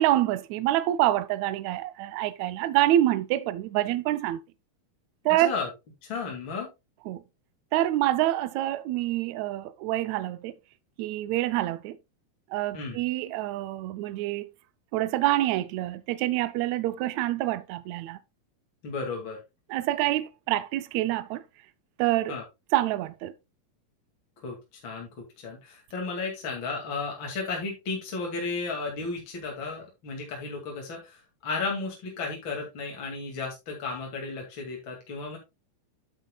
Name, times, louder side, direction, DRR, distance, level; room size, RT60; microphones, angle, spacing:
voice 1, 0.0-4.4 5.2-5.5 7.1-7.2 7.7-10.5 11.0-12.0 12.5-14.5 14.9-18.2 19.7-21.4 22.0-22.3 22.7-23.3, right 14 dB, 85° right, 1.6 m, -26 dB
voice 2, 6.0-6.7 12.7-13.0 18.8-19.4 22.3-22.4 24.4-25.1 25.4-35.4, left 4 dB, 40° left, 2.6 m, -34 dB
9.6 x 8.4 x 2.2 m
omnidirectional pair, 4.0 m